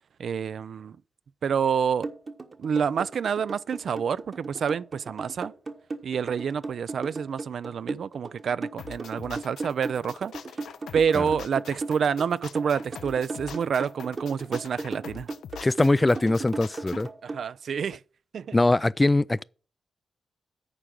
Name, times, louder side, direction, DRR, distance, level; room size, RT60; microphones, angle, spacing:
voice 1, 0.2-1.0 1.4-2.1 2.6-5.5 6.0-10.3 10.6-10.7 10.9-15.3 17.2-18.0 18.3-18.6, right 7 dB, 70° right, 0.4 m, -28 dB
sound 1, 2.0-17.4, right 3 dB, 45° right, 1.2 m, -36 dB
sound 2, 8.8-17.1, left 8 dB, 85° left, 0.5 m, -44 dB
voice 2, 15.6-17.1 18.5-19.4, left 2 dB, 20° left, 0.3 m, -22 dB
9.8 x 4.6 x 6.5 m
cardioid pair, 60°, 0 cm